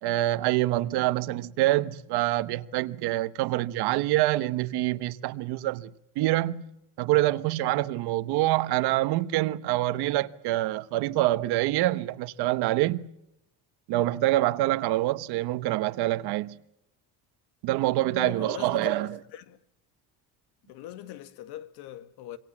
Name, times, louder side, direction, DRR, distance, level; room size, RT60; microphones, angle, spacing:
voice 1, 0.0-6.6 7.0-13.1 13.9-16.6 17.6-19.1, right 16 dB, 85° right, 1.2 m, -26 dB
voice 2, 18.2-19.6 20.7-22.4, left 13 dB, 80° left, 1.8 m, -41 dB
26.0 x 24.5 x 7.3 m
cardioid pair, 175°, 38 cm